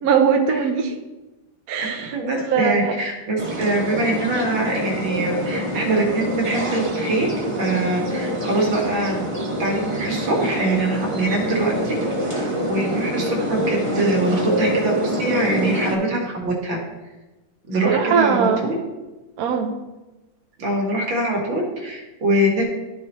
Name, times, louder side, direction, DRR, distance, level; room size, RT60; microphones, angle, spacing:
voice 1, 0.0-0.9 1.7-2.9 17.8-18.6 19.4-19.7, right 6 dB, 60° right, 3 dB, 1.0 m, -20 dB
voice 2, 1.8-9.2 9.6-11.9 12.3-16.8 17.7-18.8 20.6-22.6, right 2 dB, 75° right, -2 dB, 2.4 m, -23 dB
sound 1, 3.4-16.0, equal, 20° right, 1.1 m, -25 dB
13.0 x 4.4 x 3.0 m, 1.1 s
omnidirectional pair, 2.1 m